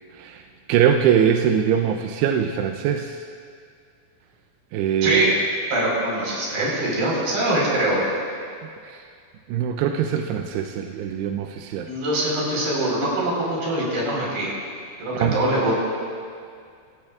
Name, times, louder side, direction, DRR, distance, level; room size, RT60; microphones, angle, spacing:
voice 1, 0.7-3.2 4.7-5.3 8.8-9.0 9.5-11.9 15.2-15.3, right 8 dB, 80° right, 4 dB, 2.5 m, -22 dB
voice 2, 5.0-5.4 5.7-8.1 11.8-14.5 15.0-15.7, right 1 dB, 55° right, -4 dB, 6.0 m, -23 dB
26.0 x 15.5 x 2.4 m, 2.2 s
omnidirectional pair, 5.1 m